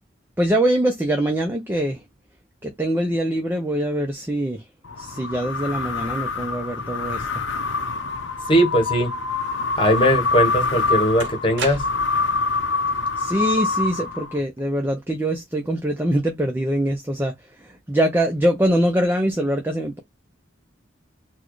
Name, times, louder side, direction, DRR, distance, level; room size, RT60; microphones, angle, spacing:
voice 1, 0.4-2.0 2.6-4.6 5.0-7.4 13.2-17.3 17.6-20.0, right 1 dB, 10° right, 0.5 m, -23 dB
sound 1, 4.8-14.6, left 4 dB, 80° left, 0.8 m, -25 dB
voice 2, 8.5-9.1 9.8-11.8, equal, 25° left, 1.1 m, -19 dB
sound 2, 10.2-10.3 11.2-12.3, right 5 dB, 70° right, 0.7 m, -32 dB
4.2 x 2.2 x 3.1 m
head